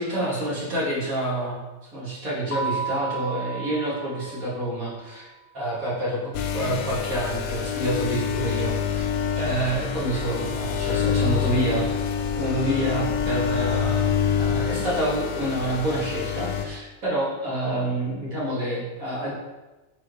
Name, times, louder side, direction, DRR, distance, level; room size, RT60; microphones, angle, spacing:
voice 1, 0.0-1.6 1.9-5.3 5.5-9.1 9.4-11.9 12.4-14.1 14.4-19.3, right 1 dB, 80° right, -8 dB, 2.8 m, -28 dB
Keyboard (musical), 2.5-5.1, right 4 dB, 55° left, 0.8 m, -33 dB
sound 1, 6.3-16.7, left 7 dB, 85° left, 1.1 m, -26 dB
7.1 x 4.9 x 3.2 m, 1.1 s
omnidirectional pair, 1.4 m